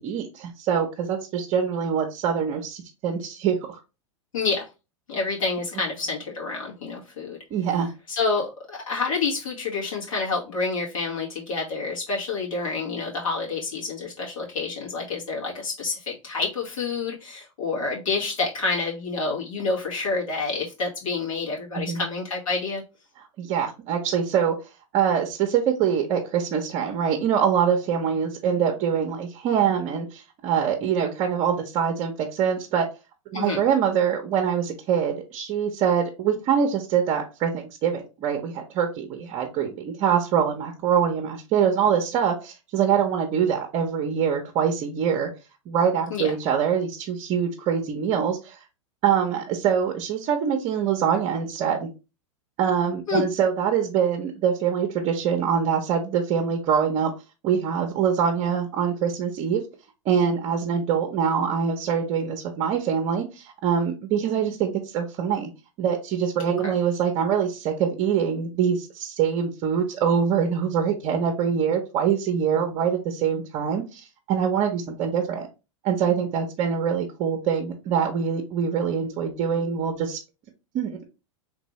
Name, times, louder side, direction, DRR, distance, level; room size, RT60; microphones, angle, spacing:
voice 1, 0.0-3.8 7.5-7.9 21.8-22.0 23.4-24.5 24.9-32.9 33.3-45.3 45.7-48.6 49.0-51.9 52.6-57.1 57.4-59.6 60.0-65.5 65.8-75.5 75.8-80.2 80.7-81.0, right 7 dB, 40° right, 4 dB, 0.7 m, -24 dB
voice 2, 4.3-4.7 5.1-7.4 8.1-22.8 33.3-33.6 46.1-46.3 53.1-53.2 66.6-66.7, left 4 dB, 85° left, -4 dB, 1.8 m, -28 dB
3.3 x 2.6 x 3.1 m, 0.28 s
hypercardioid pair, 115°, 17 cm